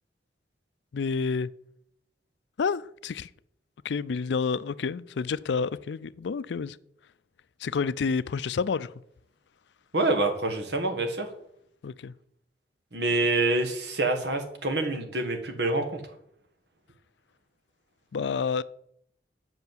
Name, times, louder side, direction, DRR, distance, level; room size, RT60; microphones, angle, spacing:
voice 1, 0.9-1.5 2.6-3.3 3.8-6.8 7.6-8.9 11.8-12.1 18.1-18.6, left 5 dB, 80° left, 0.4 m, -29 dB
voice 2, 9.9-11.3 12.9-16.0, right 2 dB, 75° right, 1.6 m, -26 dB
8.2 x 5.7 x 7.3 m
head